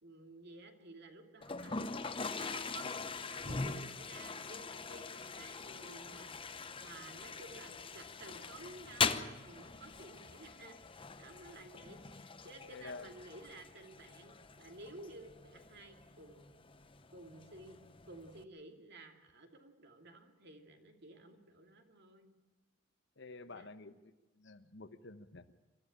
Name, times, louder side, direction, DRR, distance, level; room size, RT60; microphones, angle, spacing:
voice 1, 0.0-2.9 3.3-10.8 11.2-16.5 17.1-22.3 23.4-23.7, right 2 dB, 55° right, 4 dB, 2.6 m, -54 dB
Toilet flush, 1.4-18.4, left 4 dB, 25° left, 0.8 m, -42 dB
voice 2, 12.7-13.1 23.2-25.5, left 3 dB, 60° left, 11 dB, 1.0 m, -50 dB
25.0 x 14.0 x 8.7 m, 1.2 s
head